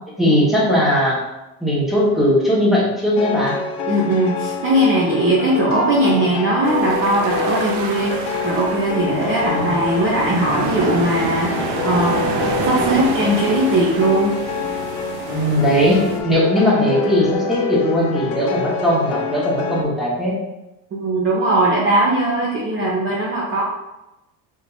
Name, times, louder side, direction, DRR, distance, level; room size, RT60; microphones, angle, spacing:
voice 1, 0.2-1.2 1.6-3.6 9.1-9.7 15.3-20.4, equal, ahead, -6 dB, 1.4 m, -18 dB
sound 1, 3.2-19.8, left 4 dB, 75° left, 0.8 m, -27 dB
voice 2, 3.9-12.2 12.6-14.4 20.9-23.6, right 1 dB, 30° right, -5 dB, 0.8 m, -19 dB
sound 2, 6.6-16.2, right 4 dB, 60° right, 0.8 m, -28 dB
3.7 x 3.4 x 4.0 m, 0.97 s
cardioid pair, 130°, 43 cm